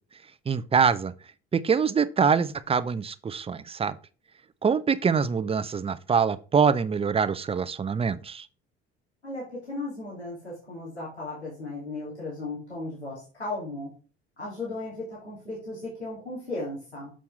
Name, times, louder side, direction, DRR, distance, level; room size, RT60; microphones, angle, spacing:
voice 1, 0.5-1.1 1.5-4.0 4.6-8.5, right 6 dB, 20° right, 0.7 m, -24 dB
voice 2, 9.2-13.9 14.4-17.1, left 2 dB, 90° left, 2.6 m, -36 dB
7.0 x 6.4 x 3.4 m
figure-of-eight pair, 60°, 33 cm